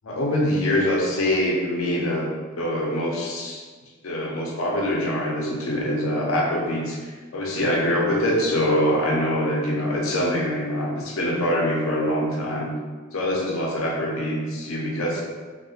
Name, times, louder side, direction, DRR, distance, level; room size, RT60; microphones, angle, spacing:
voice 1, 0.0-2.3 2.6-3.6 4.0-12.7 13.1-15.2, left 1 dB, 75° left, -1 dB, 0.5 m, -24 dB
2.9 x 2.1 x 2.4 m, 1.4 s
head